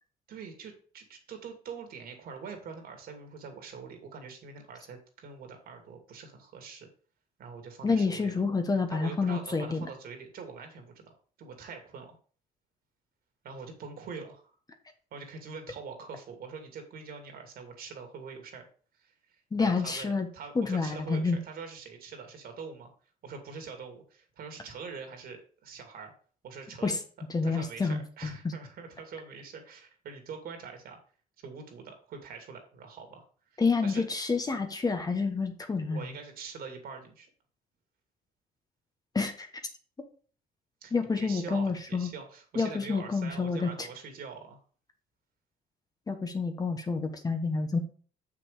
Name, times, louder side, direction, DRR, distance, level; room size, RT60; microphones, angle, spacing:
voice 1, 0.3-6.9 7.4-8.4 8.9-11.1 11.4-12.2 13.4-14.5 15.1-18.7 18.9-22.9 23.2-26.1 26.4-27.0 27.4-31.0 31.4-33.2 33.5-34.0 35.9-37.3 40.8-44.6, right 5 dB, 60° right, 4 dB, 2.6 m, -44 dB
voice 2, 7.8-9.9 19.5-20.3 20.5-21.4 26.8-27.0 27.3-28.5 33.6-36.0 39.1-39.5 40.9-42.1 42.5-43.9 46.1-47.8, left 4 dB, 20° left, 6 dB, 1.3 m, -28 dB
7.0 x 6.0 x 5.0 m, 0.42 s
cardioid pair, 110°, 17 cm